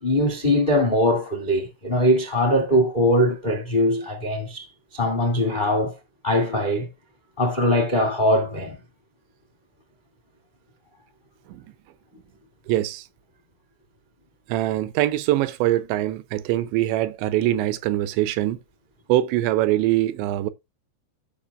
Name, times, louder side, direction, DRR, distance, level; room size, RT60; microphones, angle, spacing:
voice 1, 0.0-4.6 4.9-5.9 6.2-6.9 7.4-8.7, equal, 40° left, 0.6 m, -21 dB
voice 2, 12.7-13.1 14.5-18.6 19.1-20.5, right 14 dB, 85° right, 2.9 m, -23 dB
15.5 x 5.7 x 2.4 m
omnidirectional pair, 5.2 m